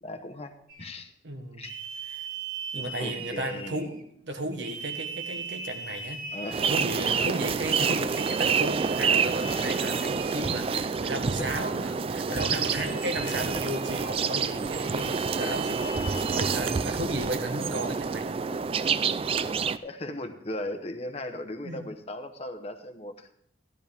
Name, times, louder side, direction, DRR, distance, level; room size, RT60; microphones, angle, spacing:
voice 1, 0.0-1.1 1.6-1.7 3.0-3.9 6.3-6.7 10.4-10.5 12.3-12.6 13.2-13.3 15.4-15.6 19.8-23.3, left 1 dB, 35° left, 7 dB, 0.9 m, -37 dB
sound 1, 0.7-0.9 1.6-4.0 4.6-7.4 8.1-10.9 12.3-14.2 14.9-17.0, right 5 dB, 50° right, 2.2 m, -39 dB
voice 2, 1.2-1.6 2.0-2.3 2.7-6.2 6.7-15.9 16.3-18.3 21.6-21.8, right 1 dB, 75° right, 6 dB, 1.4 m, -34 dB
sound 2, 6.5-19.8, right 5 dB, 30° right, 0.3 m, -28 dB
13.5 x 12.0 x 3.5 m, 0.69 s
head